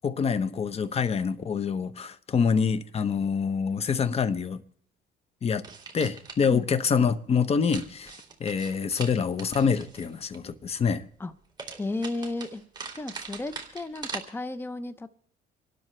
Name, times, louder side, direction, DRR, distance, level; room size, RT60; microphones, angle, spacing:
voice 1, 0.0-4.6 5.4-5.6 5.9-11.0, left 6 dB, 35° left, 1.0 m, -26 dB
sound 1, 5.6-6.5 7.7-10.4 11.6-14.2, right 5 dB, 25° right, 2.7 m, -41 dB
voice 2, 11.8-12.6 12.9-15.1, left 2 dB, 15° left, 0.8 m, -34 dB
27.0 x 12.5 x 3.3 m
cardioid pair, 110°, 17 cm